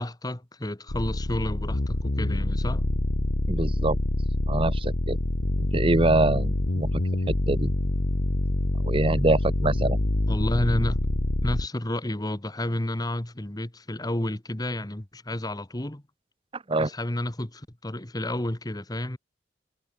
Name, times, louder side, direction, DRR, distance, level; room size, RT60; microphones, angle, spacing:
voice 1, 0.0-2.9 10.3-11.0 11.4-16.0 16.8-19.2, left 1 dB, 20° left, 1.3 m, -30 dB
sound 1, 0.9-11.7, left 1 dB, 65° left, 1.3 m, -26 dB
voice 2, 3.5-4.0 4.5-5.2 5.6-6.9 7.3-7.7 8.8-10.0 16.7-16.9, right 2 dB, 30° right, 1.0 m, -24 dB
head